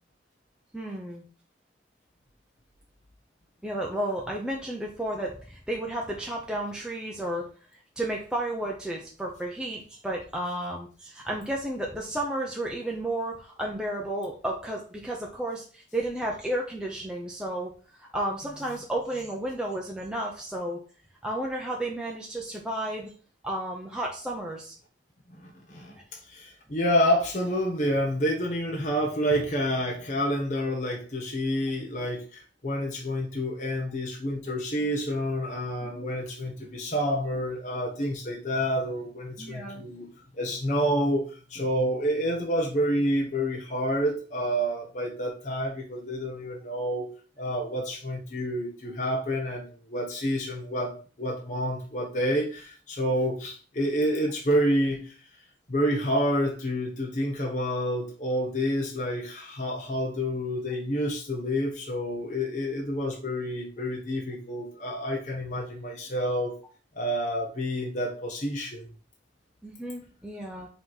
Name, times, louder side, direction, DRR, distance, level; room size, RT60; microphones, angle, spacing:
voice 1, 0.7-1.2 3.6-7.5 8.0-20.8 21.2-23.1 23.4-24.8 35.8-36.1 39.4-39.8 69.6-70.7, right 1 dB, 5° right, -2 dB, 0.6 m, -32 dB
voice 2, 25.3-40.1 40.4-47.1 47.4-55.1 55.7-66.5 67.0-68.9, equal, 40° left, 0 dB, 0.9 m, -28 dB
5.6 x 3.0 x 5.5 m, 0.39 s
head